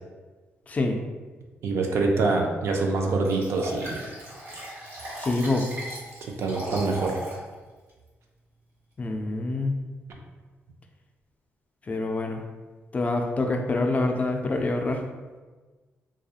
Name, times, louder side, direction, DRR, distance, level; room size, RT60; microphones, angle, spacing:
voice 1, 0.7-1.0 5.2-5.6 9.0-9.8 11.9-12.4 12.9-15.0, left 2 dB, 30° left, 3 dB, 0.3 m, -26 dB
voice 2, 1.6-4.1 6.4-7.1, right 3 dB, 70° right, 1 dB, 0.4 m, -25 dB
Liquid, 3.2-7.4 7.9-8.0, equal, 85° right, 1.0 m, -37 dB
2.3 x 2.3 x 2.8 m, 1.3 s
cardioid pair, 85°, 5 cm